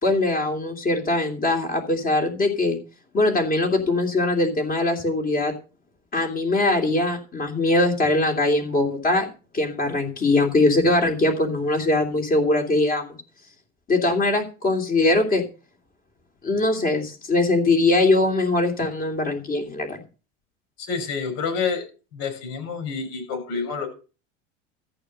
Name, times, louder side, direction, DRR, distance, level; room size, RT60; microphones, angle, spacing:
voice 1, 0.0-2.8 3.1-5.5 6.1-13.2 13.9-15.4 16.4-20.0, left 2 dB, 30° left, 3 dB, 2.9 m, -21 dB
voice 2, 20.8-21.8 22.1-23.9, left 5 dB, 65° left, 6 dB, 6.4 m, -28 dB
14.0 x 6.7 x 6.5 m, 0.34 s
supercardioid pair, 130°, 30 cm